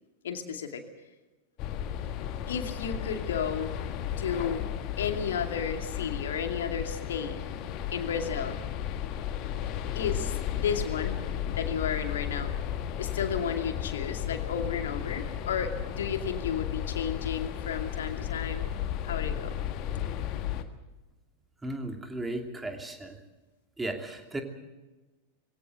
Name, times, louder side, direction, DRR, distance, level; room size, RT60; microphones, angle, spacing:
voice 1, 0.2-0.8 2.5-3.8 4.2-4.6 5.0-7.4 7.9-8.5 9.9-11.2 11.6-12.5 13.0-18.6 19.0-19.6 19.9-20.0, left 7 dB, 60° left, 6 dB, 2.5 m, -33 dB
sound 1, 1.6-20.6, left 10 dB, 40° left, 1.6 m, -34 dB
voice 2, 21.6-23.2 23.8-24.4, right 2 dB, 10° right, 4 dB, 2.9 m, -35 dB
22.0 x 17.0 x 8.1 m, 1.1 s
figure-of-eight pair, 90°, 0 cm